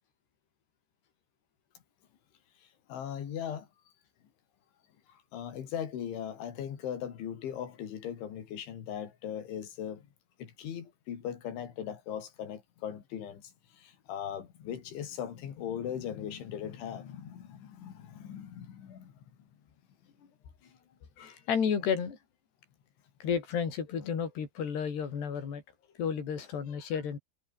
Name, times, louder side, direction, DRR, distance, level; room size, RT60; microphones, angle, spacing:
voice 1, 2.6-3.7 5.3-10.1 10.4-19.5, left 9 dB, 75° left, 5.6 m, -39 dB
voice 2, 21.2-22.2 23.2-25.6 26.0-27.2, left 7 dB, 60° left, 6.7 m, -32 dB
omnidirectional pair, 5.4 m